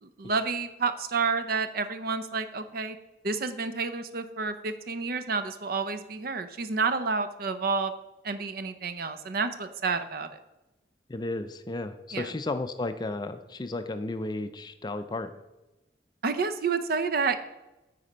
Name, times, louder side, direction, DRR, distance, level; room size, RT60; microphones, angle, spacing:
voice 1, 0.0-3.0 3.2-7.9 8.2-10.3 12.1-12.3 16.2-17.4, right 4 dB, 55° right, 10 dB, 0.6 m, -29 dB
voice 2, 11.1-15.4, left 2 dB, 25° left, 9 dB, 0.4 m, -33 dB
9.5 x 4.3 x 5.0 m, 1.0 s
head